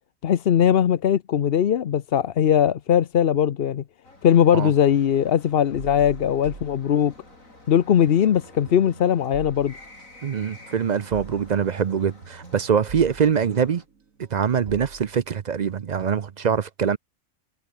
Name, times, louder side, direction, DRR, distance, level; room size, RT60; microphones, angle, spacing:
voice 1, 0.2-3.8 4.2-7.1 7.7-9.7, left 9 dB, 55° left, 0.9 m, -20 dB
sound 1, 4.0-13.9, left 2 dB, 80° left, 6.9 m, -50 dB
sound 2, 5.8-7.5 7.8-16.4, right 5 dB, 85° right, 2.3 m, -44 dB
voice 2, 10.2-13.8 14.3-17.0, right 7 dB, 50° right, 0.5 m, -23 dB
omnidirectional pair, 1.4 m